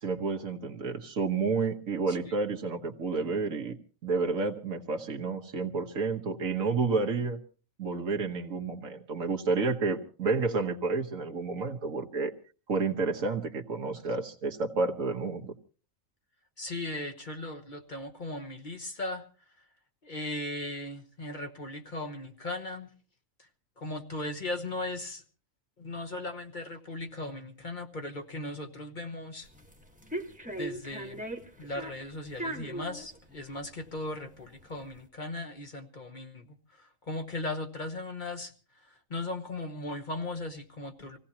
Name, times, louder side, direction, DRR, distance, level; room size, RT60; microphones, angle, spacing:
voice 1, 0.0-3.8 4.0-7.4 7.8-12.3 12.7-15.5, right 4 dB, 75° right, 2 dB, 1.6 m, -30 dB
voice 2, 16.6-19.2 20.0-22.9 23.4-23.5 23.8-25.2 25.8-29.5 30.6-31.2 31.6-38.5 38.9-41.2, left 2 dB, 35° left, 5 dB, 1.3 m, -37 dB
sound 1, 29.4-35.0, right 1 dB, 5° right, 1.2 m, -39 dB
25.5 x 16.5 x 2.9 m, 0.38 s
omnidirectional pair, 1.4 m